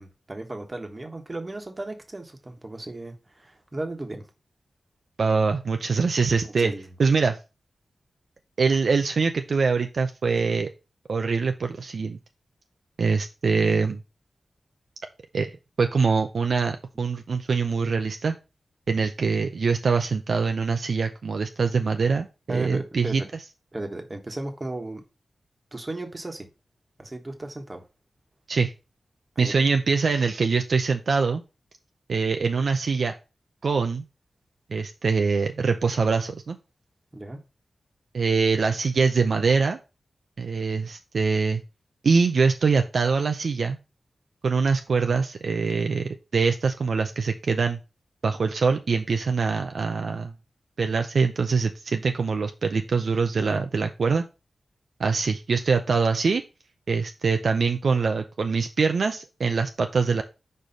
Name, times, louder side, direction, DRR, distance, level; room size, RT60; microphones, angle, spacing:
voice 1, 0.0-4.3 6.4-6.9 22.5-23.3 23.7-25.0 25.7-26.5 27.0-27.8 29.3-29.5 37.1-37.4 53.4-53.6, right 2 dB, 30° right, 1.3 m, -35 dB
voice 2, 5.2-6.7 7.0-7.4 8.6-10.7 11.1-12.2 13.0-14.0 15.3-15.5 15.8-18.4 18.9-23.2 28.5-28.7 29.4-31.4 32.1-33.1 33.6-34.0 34.7-36.6 38.1-39.8 40.4-41.6 42.0-43.8 44.4-47.8 48.2-50.3 50.8-54.2 55.0-56.4 56.9-60.2, right 4 dB, 70° right, 0.5 m, -23 dB
4.8 x 4.4 x 5.2 m
wide cardioid pair, 90°, 0 cm